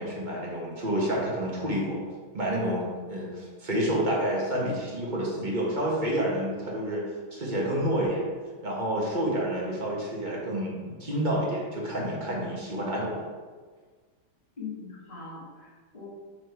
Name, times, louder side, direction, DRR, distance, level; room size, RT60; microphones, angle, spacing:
voice 1, 0.0-2.0 2.3-8.3 8.6-13.2, right 1 dB, 35° right, -4 dB, 0.8 m, -29 dB
voice 2, 14.6-16.1, left 5 dB, 20° left, -7 dB, 1.9 m, -41 dB
6.1 x 4.0 x 4.5 m, 1.5 s
omnidirectional pair, 2.3 m